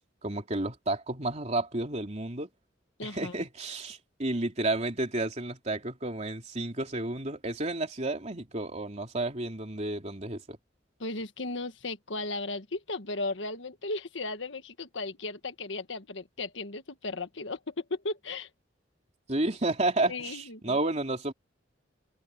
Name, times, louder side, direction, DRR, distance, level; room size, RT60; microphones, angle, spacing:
voice 1, 0.2-2.5 3.0-10.6 19.3-21.3, right 2 dB, 35° right, 3.3 m, -31 dB
voice 2, 3.0-3.4 11.0-18.5 20.1-20.8, left 2 dB, 75° left, 1.6 m, -36 dB
open air
head